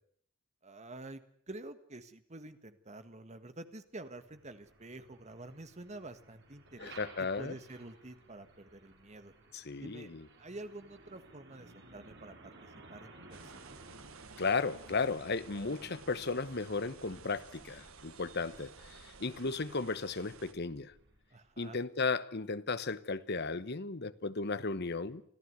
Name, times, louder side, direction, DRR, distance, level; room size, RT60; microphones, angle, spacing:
voice 1, 0.6-9.3 9.8-10.1 10.4-13.8 21.3-21.8, right 2 dB, 35° right, 1.7 m, -48 dB
Truck, 4.0-21.6, right 2 dB, 55° right, 5.5 m, -57 dB
voice 2, 6.8-7.5 9.5-10.3 14.4-20.9 21.6-25.2, left 4 dB, 50° left, 1.2 m, -35 dB
sound 1, 13.3-20.5, right 5 dB, 80° right, 1.4 m, -55 dB
25.5 x 15.0 x 9.6 m
head